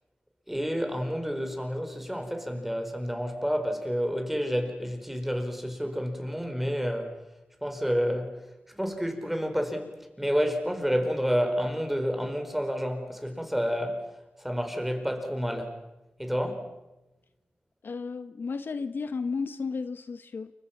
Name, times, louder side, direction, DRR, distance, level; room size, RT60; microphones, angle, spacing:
voice 1, 0.5-7.2 7.6-15.8 16.2-16.7, equal, 5° right, 4.7 m, -30 dB
voice 2, 17.8-20.5, left 4 dB, 65° left, 1.0 m, -33 dB
29.5 x 24.0 x 6.0 m
wide cardioid pair, 75°, 4 cm